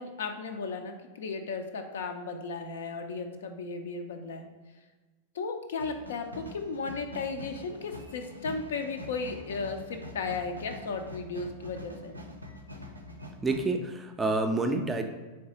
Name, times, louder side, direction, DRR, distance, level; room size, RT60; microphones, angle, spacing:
voice 1, 0.0-4.5 5.3-12.1, left 4 dB, 60° left, 6 dB, 0.4 m, -35 dB
sound 1, 5.8-13.6, left 1 dB, 85° right, 0.4 m, -44 dB
voice 2, 13.4-15.0, right 2 dB, 15° right, 5 dB, 0.4 m, -28 dB
3.9 x 3.2 x 2.9 m, 1.3 s
figure-of-eight pair, 90°, 0 cm